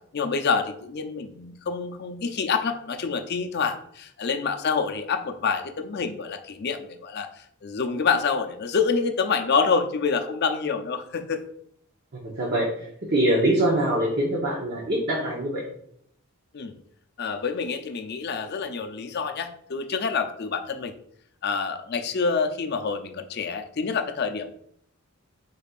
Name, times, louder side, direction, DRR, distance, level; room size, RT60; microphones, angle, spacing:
voice 1, 0.1-7.3 7.6-11.4 16.5-16.8 17.2-20.9 21.4-24.5, left 5 dB, 45° left, 7 dB, 0.5 m, -27 dB
voice 2, 12.1-15.6, right 1 dB, 45° right, -4 dB, 0.9 m, -24 dB
5.2 x 4.1 x 2.4 m, 0.67 s
head